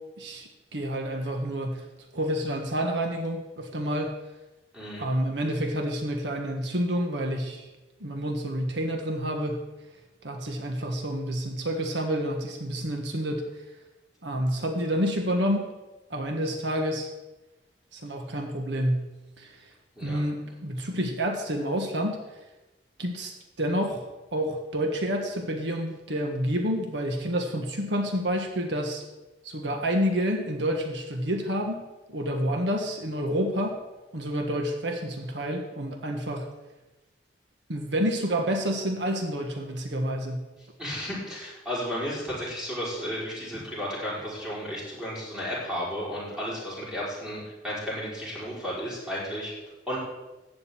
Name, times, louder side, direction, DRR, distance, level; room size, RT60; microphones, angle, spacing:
voice 1, 0.2-1.8 2.1-4.2 5.0-7.7 8.0-9.6 10.2-13.5 14.2-15.7 16.1-17.1 17.9-19.1 19.4-19.7 20.0-22.2 23.0-29.0 29.4-31.8 32.1-33.8 34.1-36.5 37.7-40.5, equal, 80° right, 3 dB, 1.6 m, -29 dB
voice 2, 4.7-5.1 20.0-20.2 40.8-49.5 49.9-50.0, equal, 5° right, -7 dB, 5.4 m, -33 dB
14.5 x 5.3 x 8.9 m, 1.1 s
head